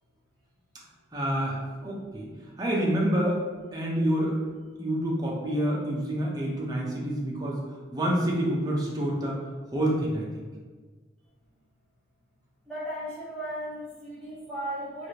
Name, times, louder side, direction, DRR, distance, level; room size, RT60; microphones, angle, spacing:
voice 1, 1.1-2.3 2.6-3.4 3.7-4.4 4.8-7.6 7.9-9.4 9.7-10.5, right 1 dB, 20° right, -4 dB, 0.6 m, -27 dB
voice 2, 12.7-15.1, right 1 dB, 5° left, -12 dB, 1.2 m, -36 dB
3.3 x 2.5 x 2.8 m, 1.4 s
head